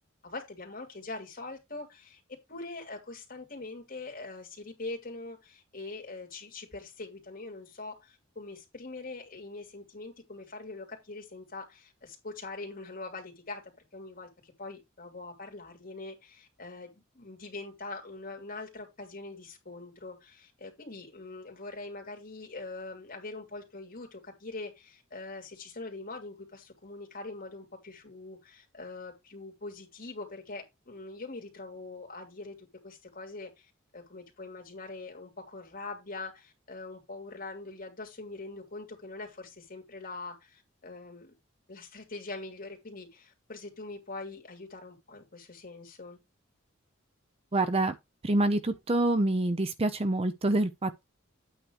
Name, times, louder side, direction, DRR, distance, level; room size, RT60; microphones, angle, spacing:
voice 1, 0.2-2.2 2.5-13.6 13.9-33.7 33.9-41.3 41.7-46.2, left 3 dB, 45° left, 2.9 m, -43 dB
voice 2, 47.5-48.0 48.2-51.0, right 2 dB, 30° right, 0.6 m, -26 dB
8.9 x 3.1 x 6.4 m
head